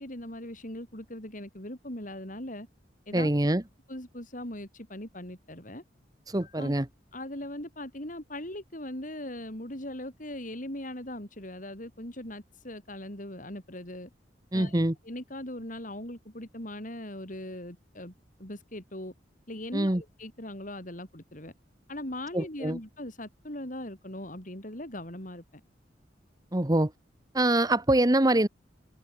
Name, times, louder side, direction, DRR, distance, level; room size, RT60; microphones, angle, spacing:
voice 1, 0.0-2.7 3.1-3.3 3.9-5.8 6.4-6.7 7.1-14.1 14.5-18.1 18.4-19.1 19.5-21.5 21.9-25.6, left 1 dB, 45° left, 6.4 m, -40 dB
voice 2, 3.1-3.6 6.3-6.9 14.5-14.9 19.7-20.0 22.3-22.8 26.5-26.9 27.3-28.5, right 1 dB, 20° right, 1.3 m, -24 dB
head